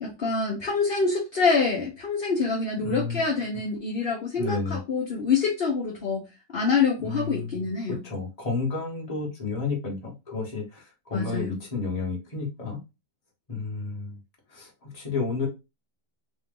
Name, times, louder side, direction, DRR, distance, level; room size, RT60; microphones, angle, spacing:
voice 1, 0.0-6.2 6.5-8.0 11.1-11.6, left 4 dB, 45° left, -2 dB, 0.8 m, -26 dB
voice 2, 2.8-3.2 4.4-4.8 7.0-7.7 8.0-12.8 13.5-14.2 14.5-15.5, left 4 dB, 25° left, -2 dB, 1.1 m, -31 dB
3.9 x 2.4 x 3.7 m, 0.26 s
omnidirectional pair, 1.9 m